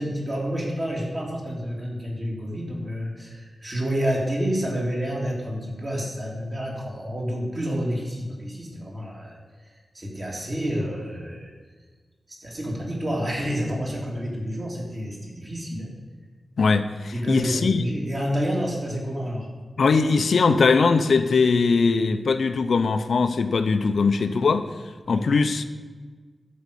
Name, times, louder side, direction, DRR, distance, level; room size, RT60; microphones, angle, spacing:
voice 1, 0.0-11.5 12.3-15.9 17.1-19.5 25.0-25.3, equal, 30° right, -2 dB, 2.9 m, -29 dB
voice 2, 16.6-17.8 19.8-24.7 25.1-25.7, left 4 dB, 75° left, 9 dB, 0.6 m, -21 dB
11.5 x 5.2 x 8.5 m, 1.4 s
wide cardioid pair, 135°, 0 cm